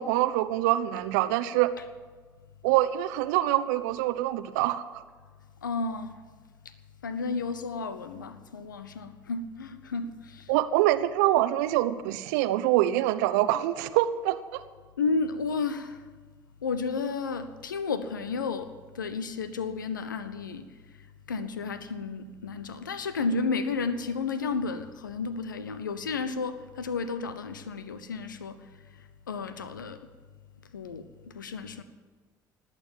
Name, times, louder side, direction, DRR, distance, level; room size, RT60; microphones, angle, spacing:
voice 1, 0.0-1.7 2.6-5.0 10.5-14.6, right 14 dB, 65° right, 13 dB, 0.7 m, -25 dB
voice 2, 5.6-6.2 7.0-10.4 15.0-16.0 16.6-18.7 19.0-20.6 21.3-28.6 29.3-30.0 30.7-31.1 31.3-31.8, left 4 dB, 80° left, 12 dB, 0.8 m, -32 dB
18.5 x 9.1 x 7.3 m, 1.4 s
figure-of-eight pair, 55°, 10 cm